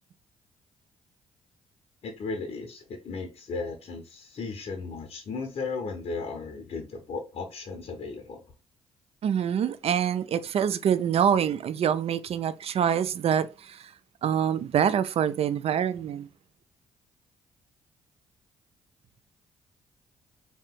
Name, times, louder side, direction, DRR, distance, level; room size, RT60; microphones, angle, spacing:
voice 1, 2.0-8.4, left 4 dB, 50° left, 0.6 m, -35 dB
voice 2, 9.2-13.8 14.2-16.3, right 8 dB, 50° right, 0.4 m, -25 dB
3.3 x 2.8 x 2.2 m
hypercardioid pair, 50°, 13 cm